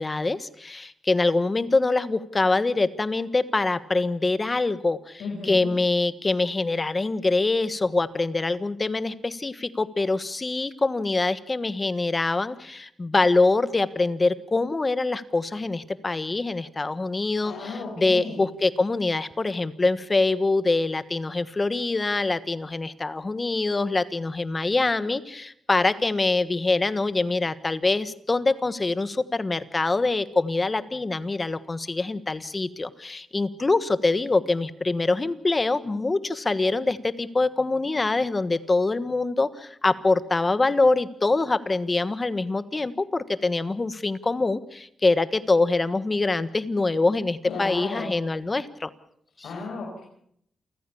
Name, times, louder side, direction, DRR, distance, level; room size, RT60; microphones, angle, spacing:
voice 1, 0.0-48.9 49.4-49.5, left 3 dB, 30° left, 14 dB, 1.4 m, -24 dB
voice 2, 5.2-5.7 17.4-18.4 47.5-48.2 49.4-50.0, left 3 dB, 80° left, -2 dB, 7.1 m, -34 dB
29.0 x 15.0 x 7.1 m, 0.69 s
cardioid pair, 90°, 0 cm